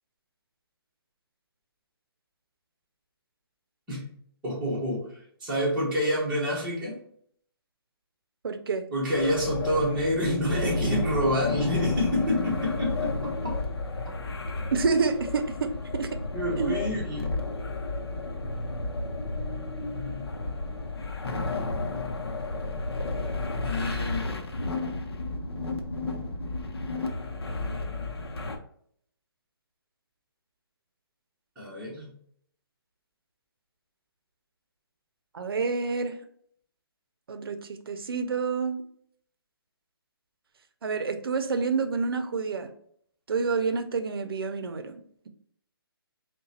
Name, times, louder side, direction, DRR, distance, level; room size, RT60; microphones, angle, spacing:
voice 1, 4.4-7.0 8.9-13.6 16.3-17.4 23.6-24.3 31.6-32.1, equal, 5° right, -10 dB, 1.0 m, -28 dB
voice 2, 8.4-8.9 14.7-16.2 16.6-16.8 35.3-36.2 37.3-38.8 40.8-42.7 43.3-45.3, right 4 dB, 70° right, 8 dB, 0.6 m, -28 dB
sound 1, 9.1-28.6, left 3 dB, 85° left, 0.7 m, -32 dB
3.8 x 2.2 x 4.1 m, 0.64 s
hypercardioid pair, 165°, 13 cm